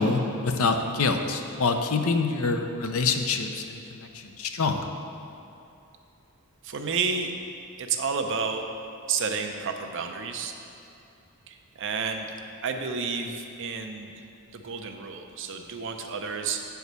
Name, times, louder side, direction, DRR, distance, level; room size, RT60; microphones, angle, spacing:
voice 1, 0.0-4.9, left 4 dB, 70° left, 5 dB, 0.6 m, -26 dB
voice 2, 6.6-7.3 7.8-8.6 9.1-10.5 11.5-12.3 12.6-14.1 14.5-16.7, right 5 dB, 60° right, 5 dB, 0.6 m, -30 dB
8.3 x 4.7 x 6.7 m, 2.7 s
head